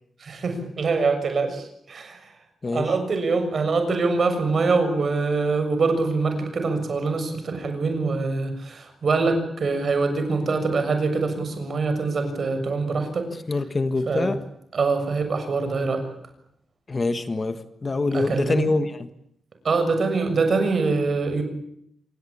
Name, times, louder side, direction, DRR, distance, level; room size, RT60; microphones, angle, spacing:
voice 1, 0.2-2.3 2.7-13.3 14.1-14.3 14.7-16.1 18.1-18.7 19.6-21.4, right 4 dB, 45° right, 7 dB, 6.8 m, -24 dB
voice 2, 2.6-2.9 13.5-14.4 16.9-19.1, left 3 dB, 25° left, 9 dB, 1.5 m, -25 dB
28.0 x 24.5 x 8.7 m, 0.75 s
wide cardioid pair, 160°, 0 cm